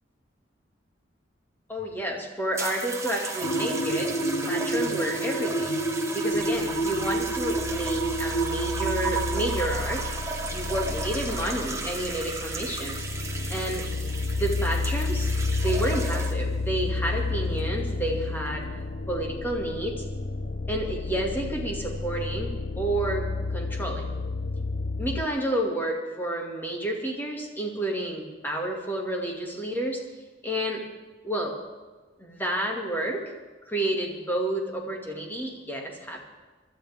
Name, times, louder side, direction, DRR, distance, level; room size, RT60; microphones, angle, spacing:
voice 1, 1.7-4.1 4.5-5.8 6.1-10.1 10.5-13.1 13.5-13.8 14.3-15.3 15.6-18.6 19.1-20.0 20.7-24.0 25.0-30.0 30.4-30.8 31.2-31.6 32.2-33.3 33.7-36.2, right 1 dB, 10° left, -1 dB, 2.4 m, -30 dB
sound 1, 2.6-16.6 17.5-17.8, right 4 dB, 15° right, 1.3 m, -34 dB
sound 2, 3.4-9.6, right 1 dB, 80° left, 1.0 m, -29 dB
sound 3, 6.3-25.3, left 3 dB, 55° left, 0.7 m, -31 dB
24.5 x 12.5 x 3.6 m, 1.3 s
head